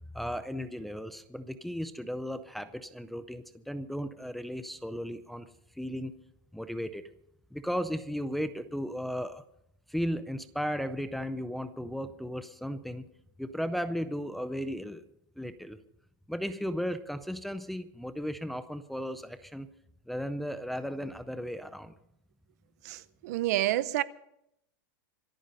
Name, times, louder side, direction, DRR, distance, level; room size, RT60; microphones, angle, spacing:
voice 1, 0.1-5.5 5.8-6.1 6.5-7.0 7.5-9.4 9.9-13.0 13.4-15.0 15.4-15.8 16.3-19.7 20.1-21.9, equal, ahead, 0.5 m, -35 dB
voice 2, 22.8-24.0, right 14 dB, 55° right, 0.7 m, -29 dB
25.5 x 9.1 x 5.4 m
supercardioid pair, 175°, 11 cm